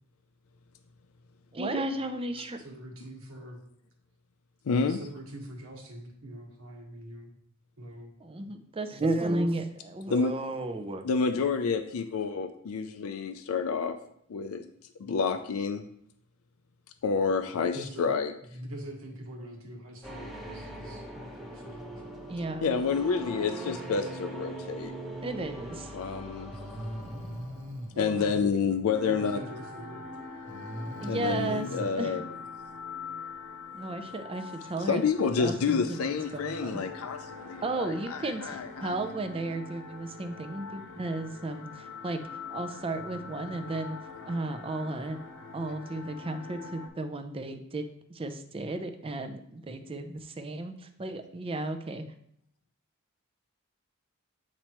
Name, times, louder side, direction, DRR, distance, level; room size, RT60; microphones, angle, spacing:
voice 1, 1.5-2.6 8.2-11.1 22.3-22.7 25.2-25.9 31.0-32.2 33.7-35.0 35.4-36.8 37.6-42.2 42.5-44.0 44.2-45.2 45.5-47.8 48.1-50.7 51.0-52.0, right 2 dB, 25° right, 7 dB, 0.5 m, -34 dB
voice 2, 2.6-3.6 4.8-7.4 7.8-8.1 9.0-9.2 17.7-18.1 18.5-22.0 27.9-28.5 29.0-30.0, right 1 dB, 75° right, 1 dB, 1.4 m, -43 dB
voice 3, 4.6-5.0 10.1-10.3 11.0-14.0 14.3-14.7 15.0-15.8 17.0-18.3 22.6-24.9 25.9-26.8 28.0-29.4 31.1-32.2 34.8-39.0, left 5 dB, 85° left, 9 dB, 0.4 m, -29 dB
sound 1, 20.0-27.9, right 2 dB, ahead, 0.9 m, -41 dB
Breathing, 25.6-25.7 26.5-28.0 30.5-31.9, equal, 60° right, 1.0 m, -39 dB
sound 2, 28.9-46.9, left 4 dB, 65° left, 0.9 m, -44 dB
8.6 x 4.4 x 3.0 m, 0.69 s
head